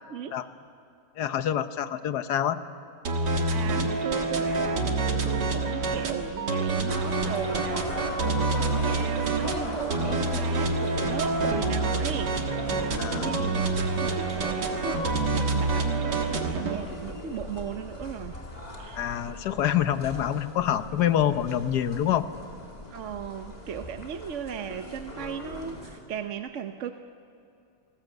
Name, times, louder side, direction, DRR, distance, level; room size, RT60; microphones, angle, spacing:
voice 1, 1.2-2.6 13.0-13.4 19.0-22.3, left 10 dB, 75° left, 11 dB, 1.5 m, -26 dB
sound 1, 3.1-16.8, right 3 dB, 85° right, 2.5 m, -27 dB
voice 2, 3.5-18.4 18.8-19.0 22.9-26.9, right 8 dB, 55° right, 8 dB, 0.9 m, -37 dB
sound 2, 6.9-26.0, left 1 dB, 25° left, 2.8 m, -40 dB
29.5 x 19.5 x 8.1 m, 2.6 s
omnidirectional pair, 1.8 m